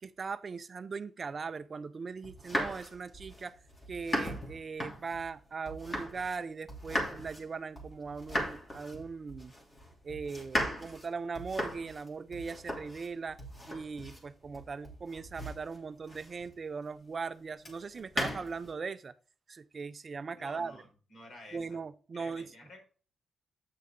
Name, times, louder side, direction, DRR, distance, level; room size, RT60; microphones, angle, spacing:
voice 1, 0.0-3.6 3.9-9.5 10.0-13.4 13.7-19.1 19.5-20.8 21.5-22.5, right 5 dB, 40° right, 0.5 m, -39 dB
sound 1, 2.2-6.4 6.7-16.6 17.6-18.7, equal, 25° left, 3.0 m, -38 dB
voice 2, 20.3-21.8 22.1-22.8, left 1 dB, 55° left, 4.5 m, -51 dB
8.6 x 6.6 x 3.7 m
cardioid pair, 105°, 0 cm